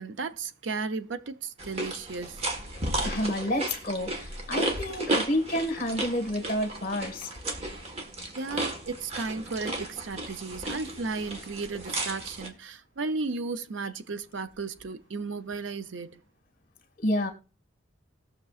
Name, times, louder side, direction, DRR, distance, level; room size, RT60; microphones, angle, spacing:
voice 1, 0.0-2.4 8.4-16.2, right 4 dB, 75° right, 0.6 m, -34 dB
sound 1, 1.6-12.5, right 2 dB, 35° right, 1.4 m, -34 dB
voice 2, 3.0-7.3 10.9-11.3 17.0-17.3, left 1 dB, 45° left, 1.7 m, -30 dB
19.0 x 6.6 x 2.4 m
head